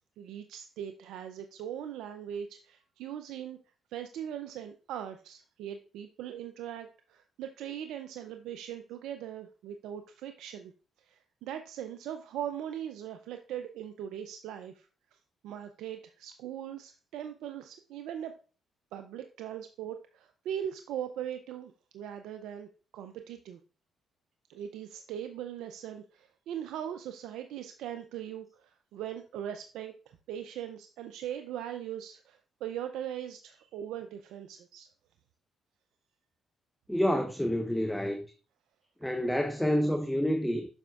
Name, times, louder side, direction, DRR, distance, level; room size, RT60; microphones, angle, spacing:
voice 1, 0.2-3.6 3.9-10.7 11.0-18.4 18.9-23.6 24.5-29.9 30.3-34.9, right 10 dB, 80° right, 0.4 m, -40 dB
voice 2, 36.9-38.2 39.0-40.7, equal, 5° left, 0.9 m, -28 dB
7.7 x 6.1 x 2.4 m
supercardioid pair, 65°, 0 cm